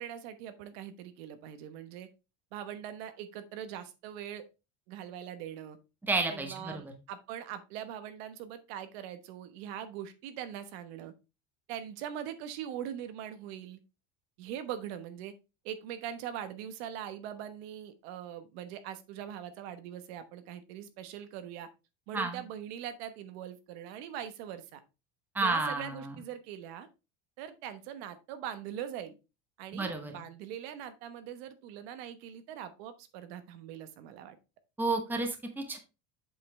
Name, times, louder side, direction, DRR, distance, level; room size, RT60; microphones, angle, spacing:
voice 1, 0.0-2.1 2.5-4.4 4.9-5.8 6.3-11.1 11.7-13.8 14.4-15.3 15.6-21.7 22.1-24.8 25.4-26.9 27.4-29.2 29.6-34.4, right 10 dB, 75° right, 10 dB, 1.1 m, -42 dB
voice 2, 6.0-6.9 22.1-22.4 25.3-26.1 29.7-30.2 34.8-35.8, right 3 dB, 5° right, 4 dB, 0.9 m, -31 dB
7.6 x 5.7 x 3.2 m, 0.28 s
cardioid pair, 165°, 32 cm